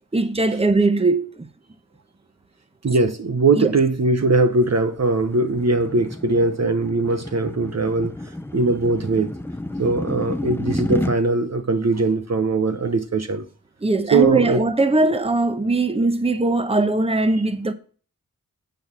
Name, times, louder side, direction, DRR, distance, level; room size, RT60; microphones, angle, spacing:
voice 1, 0.1-1.5 3.6-3.7 13.8-17.7, right 2 dB, 15° right, 1.0 m, -20 dB
voice 2, 2.8-8.1 8.5-9.3 9.8-13.5 14.1-14.6, right 3 dB, 50° right, 0.9 m, -20 dB
sound 1, 4.7-11.2, left 1 dB, 5° left, 0.6 m, -31 dB
10.0 x 4.1 x 7.4 m
cardioid pair, 40°, 34 cm